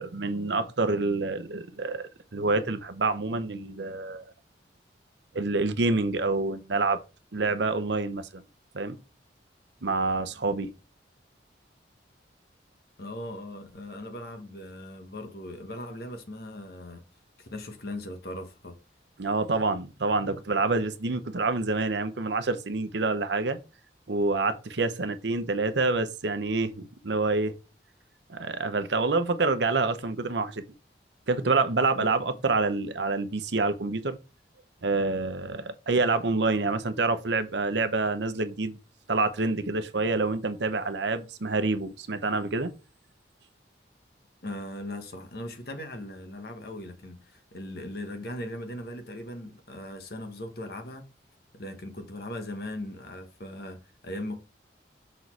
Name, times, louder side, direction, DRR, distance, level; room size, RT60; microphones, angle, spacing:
voice 1, 0.0-4.2 5.3-7.0 7.3-8.4 8.7-9.0 9.8-10.7 19.2-23.6 24.1-27.5 28.3-30.6 31.3-34.2 34.8-38.8 39.1-42.7, right 3 dB, 70° right, 0.8 m, -27 dB
voice 2, 13.0-17.0 17.4-18.8 32.0-32.1 44.4-51.1 51.5-54.4, left 1 dB, 55° left, 1.2 m, -39 dB
6.2 x 4.1 x 4.6 m
head